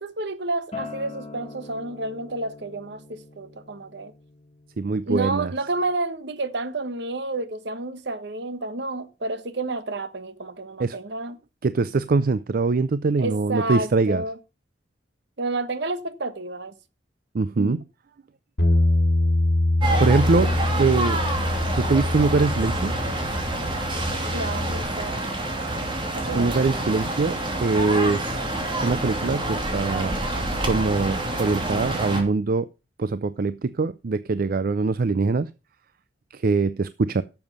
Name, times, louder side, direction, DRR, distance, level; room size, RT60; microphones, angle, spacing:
voice 1, 0.0-4.1 5.1-11.4 13.2-14.4 15.4-16.7 17.6-17.8 24.3-25.3 26.1-26.5, right 2 dB, 65° right, 1.2 m, -30 dB
Acoustic guitar, 0.7-5.9, left 4 dB, 35° left, 1.8 m, -43 dB
voice 2, 4.8-5.5 10.8-11.0 11.6-14.2 17.3-17.8 20.0-20.5 20.8-21.2 21.7-22.9 26.3-28.4 28.8-30.1 30.7-32.7 33.0-35.5 36.3-37.2, right 3 dB, 50° right, 0.5 m, -23 dB
Bass guitar, 18.6-24.8, left 1 dB, 65° left, 3.3 m, -24 dB
sound 1, 19.8-32.2, right 2 dB, 30° right, 2.7 m, -27 dB
11.0 x 7.1 x 5.3 m
head